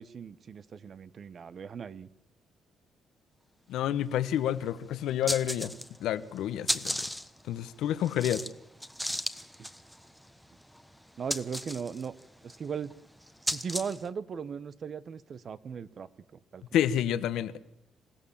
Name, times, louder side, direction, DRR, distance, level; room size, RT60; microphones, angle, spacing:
voice 1, 0.0-2.1 9.6-9.7 11.2-12.1 12.4-12.9 13.5-16.9, right 6 dB, 50° right, 1.1 m, -38 dB
voice 2, 3.7-5.7 6.0-7.0 7.5-8.4 16.7-17.6, left 11 dB, 85° left, 1.1 m, -29 dB
sound 1, 4.3-4.4 4.6-4.7 5.1-6.1 6.4-14.1, equal, ahead, 1.2 m, -35 dB
27.0 x 15.5 x 7.3 m
cardioid pair, 90°, 0 cm